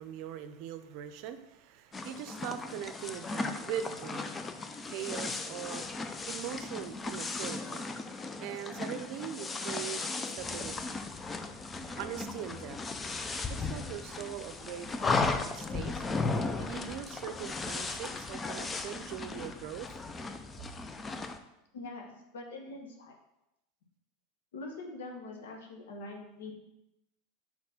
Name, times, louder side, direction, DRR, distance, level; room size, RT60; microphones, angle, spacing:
voice 1, 0.0-4.5 4.8-5.9 6.3-7.8 8.4-11.0 12.0-12.8 13.5-15.0 15.5-16.1 16.6-20.0 20.6-20.8, right 10 dB, 60° right, 10 dB, 0.5 m, -41 dB
sound 1, 1.9-21.4, left 3 dB, 20° left, 0.5 m, -36 dB
voice 2, 21.7-23.2 24.5-26.5, left 2 dB, 85° left, 2 dB, 1.2 m, -43 dB
4.4 x 4.3 x 5.6 m, 0.89 s
hypercardioid pair, 105°, 0 cm